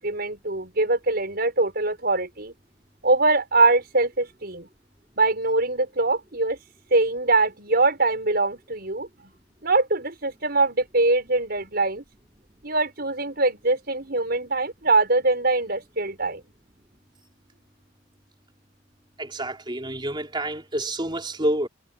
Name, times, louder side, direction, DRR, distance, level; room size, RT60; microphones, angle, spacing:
voice 1, 0.0-2.5 3.0-4.7 5.2-6.6 6.9-9.3 9.6-12.0 12.6-16.4, right 2 dB, 55° right, 6.1 m, -23 dB
voice 2, 19.2-21.7, right 1 dB, 25° right, 4.0 m, -28 dB
head